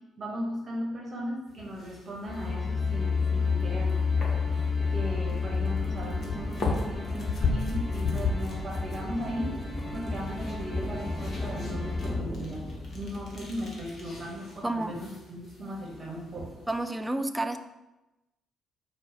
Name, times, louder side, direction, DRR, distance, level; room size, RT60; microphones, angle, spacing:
voice 1, 0.2-4.0 4.7-9.6 9.9-12.7 12.9-16.6, equal, 40° right, -2 dB, 1.1 m, -37 dB
sound 1, 1.5-16.8, left 4 dB, 45° left, 1.2 m, -38 dB
sound 2, 2.3-14.2, left 4 dB, 15° left, 1.3 m, -31 dB
voice 2, 14.6-14.9 16.7-17.6, right 2 dB, 10° right, 8 dB, 0.4 m, -30 dB
4.6 x 2.4 x 4.8 m, 1.0 s
figure-of-eight pair, 45°, 0 cm